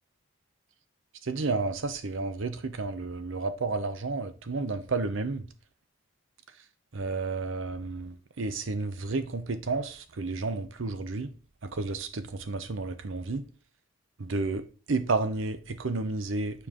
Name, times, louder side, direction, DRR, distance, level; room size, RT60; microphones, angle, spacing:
voice 1, 1.3-5.4 6.9-11.3 11.7-13.4 14.2-14.6 14.9-16.7, right 3 dB, 65° right, 0.7 m, -31 dB
6.9 x 4.6 x 3.6 m
head